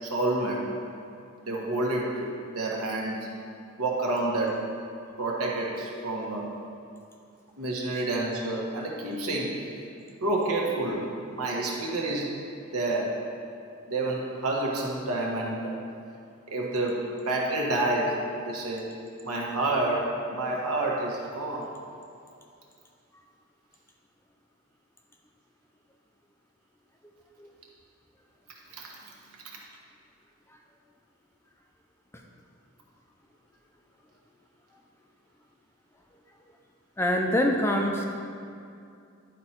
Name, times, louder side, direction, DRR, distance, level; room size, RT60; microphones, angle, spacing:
voice 1, 0.0-0.6 1.4-3.3 3.8-4.6 5.2-6.5 7.6-9.6 10.2-12.3 12.7-13.1 13.9-15.7 16.5-18.8 19.2-21.7 28.7-28.9, right 2 dB, 85° right, -2 dB, 1.4 m, -29 dB
voice 2, 37.0-38.1, left 1 dB, 10° left, 1 dB, 0.5 m, -25 dB
11.0 x 4.6 x 4.4 m, 2.5 s
head